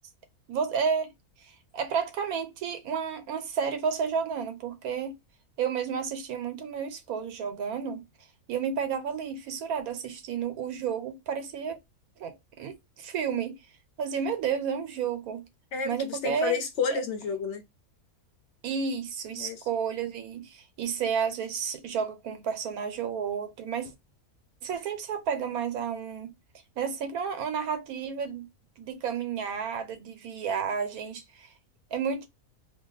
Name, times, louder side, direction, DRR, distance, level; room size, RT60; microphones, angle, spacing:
voice 1, 0.5-1.1 1.4-5.2 5.6-8.0 8.5-11.8 12.2-13.6 14.0-15.5 15.8-16.6 18.6-23.9 24.6-26.3 26.8-28.5 28.8-31.5 31.9-32.3, right 6 dB, 90° right, 1.2 m, -31 dB
voice 2, 15.7-17.6 19.4-19.6, left 5 dB, 60° left, 0.9 m, -30 dB
2.8 x 2.3 x 3.9 m
omnidirectional pair, 1.5 m